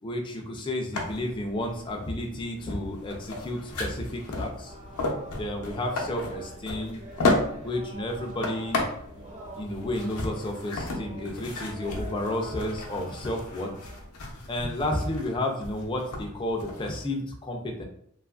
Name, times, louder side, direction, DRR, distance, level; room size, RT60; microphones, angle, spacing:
voice 1, 0.0-4.7 5.4-7.0 7.6-8.8 9.1-9.3 9.6-13.7 14.5-17.9, left 1 dB, 20° left, 2 dB, 0.3 m, -31 dB
sound 1, 0.9-17.0, left 2 dB, 85° left, 0.6 m, -34 dB
sound 2, 4.6-14.0, right 2 dB, 30° right, 0.5 m, -47 dB
2.8 x 2.4 x 2.3 m, 0.69 s
head